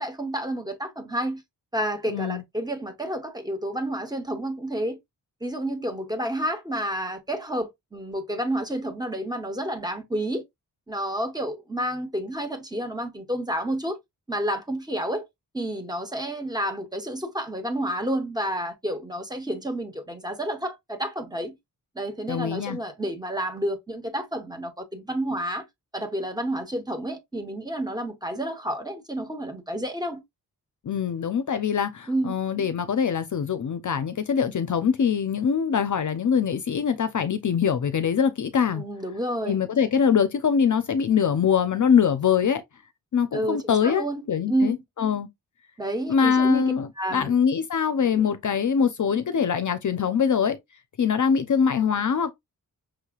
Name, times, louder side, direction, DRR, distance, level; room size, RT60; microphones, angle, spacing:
voice 1, 0.0-1.4 1.7-5.0 5.4-10.4 10.9-14.0 14.3-15.3 15.5-21.5 21.9-25.6 25.9-30.2 32.1-32.4 38.7-39.6 43.3-44.8 45.8-47.3, right 1 dB, 10° right, 1.2 m, -30 dB
voice 2, 2.1-2.4 22.3-22.8 30.8-38.8 39.4-42.6 43.1-45.3 46.1-50.6 51.0-52.3, left 7 dB, 50° left, 0.6 m, -23 dB
6.1 x 3.2 x 2.4 m
wide cardioid pair, 165°, 37 cm